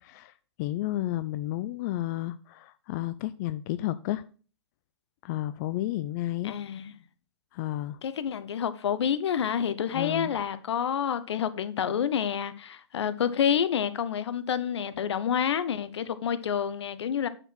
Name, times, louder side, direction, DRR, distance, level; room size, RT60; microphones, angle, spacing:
voice 1, 0.0-4.2 5.2-6.5 7.5-8.0 9.9-10.3, left 15 dB, 40° left, 0.4 m, -32 dB
voice 2, 6.4-6.9 8.0-17.3, left 8 dB, 70° left, 0.9 m, -28 dB
8.9 x 4.6 x 6.1 m
hypercardioid pair, 125°, 15 cm